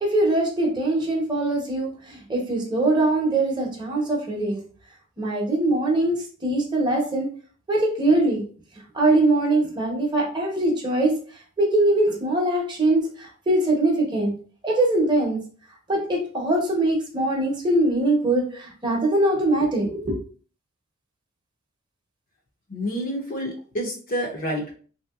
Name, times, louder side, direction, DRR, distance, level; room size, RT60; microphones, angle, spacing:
voice 1, 0.0-4.6 5.2-7.3 7.7-8.4 8.9-11.1 11.6-14.3 14.6-15.4 15.9-20.1, right 2 dB, 20° right, -1 dB, 0.8 m, -22 dB
voice 2, 22.7-24.7, equal, 40° left, 1 dB, 0.6 m, -28 dB
3.3 x 2.7 x 2.3 m, 0.42 s
head